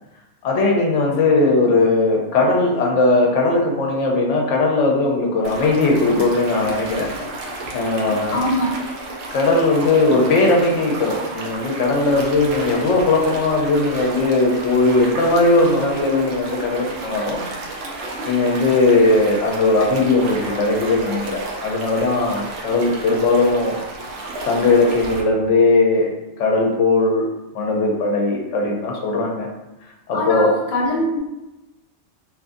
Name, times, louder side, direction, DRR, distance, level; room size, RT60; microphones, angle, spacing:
voice 1, 0.4-7.1 7.4-8.4 9.3-17.4 18.2-23.8 24.4-26.1 26.4-27.3 27.5-29.5 30.1-30.6, left 2 dB, 80° left, 0 dB, 0.9 m, -18 dB
sound 1, 5.4-25.2, right 2 dB, 75° right, 0.8 m, -32 dB
voice 2, 8.3-8.7 30.1-31.2, left 1 dB, 45° left, -3 dB, 0.6 m, -22 dB
2.8 x 2.5 x 2.4 m, 0.99 s
omnidirectional pair, 1.2 m